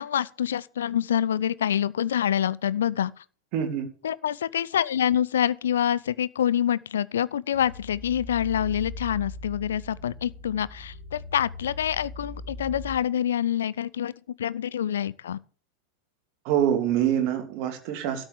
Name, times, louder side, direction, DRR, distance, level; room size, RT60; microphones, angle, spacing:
voice 1, 0.0-3.1 4.0-14.1 14.4-15.4, left 10 dB, 65° left, 0.5 m, -26 dB
voice 2, 3.5-3.9 16.4-18.3, right 10 dB, 45° right, 2.7 m, -25 dB
sound 1, 7.5-13.0, left 2 dB, 20° right, 3.4 m, -40 dB
12.5 x 6.2 x 7.3 m
figure-of-eight pair, 90°, 0 cm